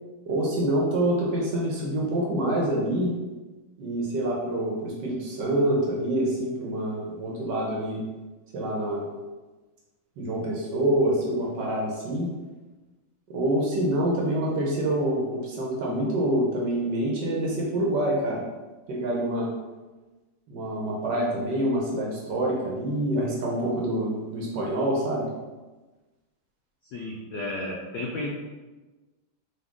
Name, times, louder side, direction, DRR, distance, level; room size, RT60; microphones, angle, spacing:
voice 1, 0.3-3.1 3.8-8.0 8.5-9.1 10.2-12.3 13.3-18.4 18.9-19.5 20.5-25.3, right 1 dB, 65° right, -3 dB, 1.2 m, -26 dB
voice 2, 26.9-28.3, left 2 dB, 85° left, -1 dB, 0.9 m, -33 dB
4.0 x 2.8 x 3.6 m, 1.2 s
omnidirectional pair, 2.3 m